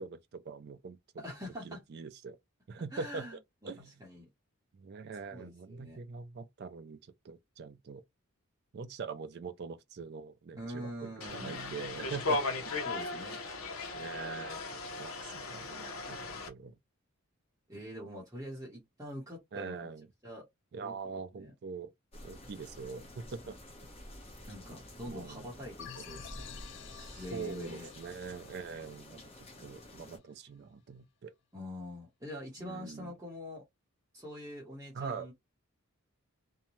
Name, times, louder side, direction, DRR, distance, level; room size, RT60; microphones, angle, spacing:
voice 1, 0.0-1.2 1.6-2.4 2.7-3.3 3.6-3.9 4.8-7.0 7.2-8.0 8.7-12.8 13.9-14.6 15.0-16.7 19.5-20.1 20.7-21.9 22.2-23.6 25.0-25.5 26.0-26.1 26.9-29.3 29.6-31.3 32.6-33.1 34.9-35.3, right 5 dB, 50° right, 0.3 m, -43 dB
voice 2, 1.2-1.8 2.9-3.4 3.6-4.2 5.3-6.0 10.6-11.6 12.8-13.4 17.7-19.9 20.2-20.5 20.8-20.9 21.3-21.5 24.5-26.4 27.2-27.9 31.5-33.6 34.1-35.3, equal, 15° right, 0.9 m, -44 dB
sound 1, 11.2-16.5, left 3 dB, 70° left, 0.8 m, -37 dB
sound 2, 22.1-30.2, left 1 dB, 25° left, 0.9 m, -50 dB
sound 3, 25.8-30.3, left 9 dB, 55° left, 0.4 m, -51 dB
2.6 x 2.2 x 3.0 m
head